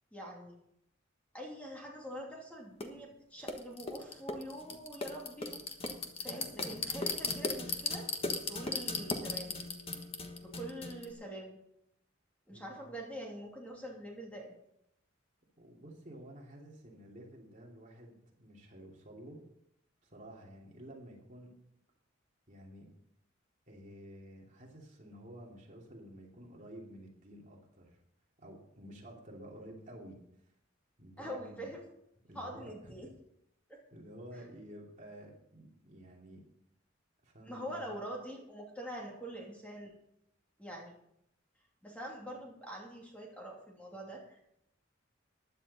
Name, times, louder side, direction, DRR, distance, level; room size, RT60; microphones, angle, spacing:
voice 1, 0.1-0.6 1.3-5.6 6.2-8.1 8.5-9.6 10.4-11.6 12.5-14.5 31.2-31.8 32.3-33.1 33.7-33.8 34.3-34.4 37.4-39.9 40.6-40.9 41.8-44.6, right 1 dB, 5° left, -2 dB, 2.8 m, -44 dB
sound 1, 2.8-2.9 3.5-11.1, left 3 dB, 30° left, 1.4 m, -37 dB
voice 2, 15.6-19.4 20.0-21.5 22.5-22.9 23.7-28.0 28.4-30.2 31.0-31.7 32.3-33.0 33.9-36.4 37.2-37.9, equal, 40° right, -1 dB, 2.9 m, -51 dB
15.5 x 11.0 x 4.3 m, 0.75 s
head